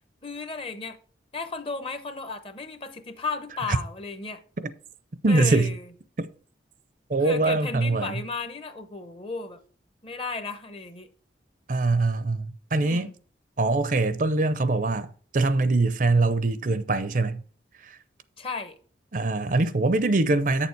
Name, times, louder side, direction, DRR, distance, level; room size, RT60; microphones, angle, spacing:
voice 1, 0.2-1.0 1.3-4.4 5.3-5.9 7.2-9.6 10.0-11.1 12.8-13.1 18.4-18.8, left 4 dB, 30° left, 0.9 m, -34 dB
voice 2, 5.2-5.7 6.2-6.3 7.1-8.2 11.7-13.1 13.6-15.1 15.3-17.4 17.8-18.0 19.1-20.7, right 2 dB, 45° right, 0.6 m, -23 dB
8.7 x 7.0 x 4.6 m
head